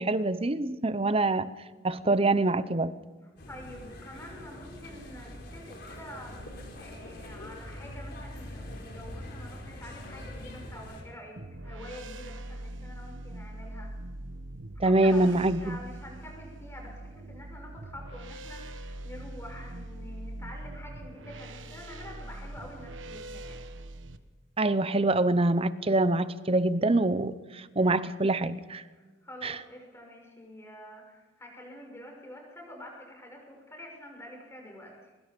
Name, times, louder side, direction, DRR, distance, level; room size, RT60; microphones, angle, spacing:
voice 1, 0.0-1.5 1.8-2.9 14.8-15.8 24.6-28.8 29.4-29.6, right 2 dB, 30° right, 14 dB, 0.8 m, -25 dB
voice 2, 3.2-6.5 6.8-13.9 14.8-23.6 29.2-35.1, left 1 dB, 15° left, 1 dB, 6.2 m, -47 dB
sound 1, 3.4-11.0, left 1 dB, 55° left, 4.7 m, -43 dB
sound 2, 11.4-24.2, right 1 dB, 80° right, 1.3 m, -42 dB
23.5 x 22.5 x 5.3 m, 1.3 s
head